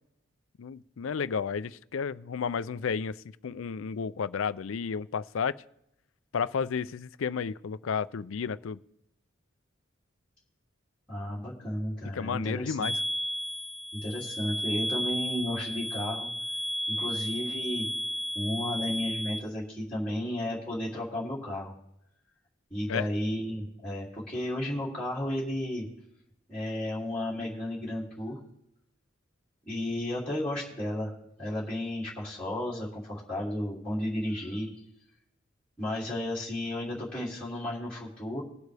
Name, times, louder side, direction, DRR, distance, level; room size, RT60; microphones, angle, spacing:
voice 1, 0.6-3.1 3.4-5.6 6.3-8.8 12.1-13.0 22.9-23.1, left 6 dB, 75° left, 16 dB, 0.4 m, -32 dB
voice 2, 11.1-12.9 13.9-16.3 16.9-17.9 18.3-21.7 22.7-25.9 26.5-28.4 29.7-34.7 35.8-38.4, left 1 dB, 5° left, -9 dB, 2.8 m, -33 dB
sound 1, 12.8-19.4, equal, 20° right, 1.3 m, -33 dB
21.0 x 8.2 x 3.4 m, 0.79 s
head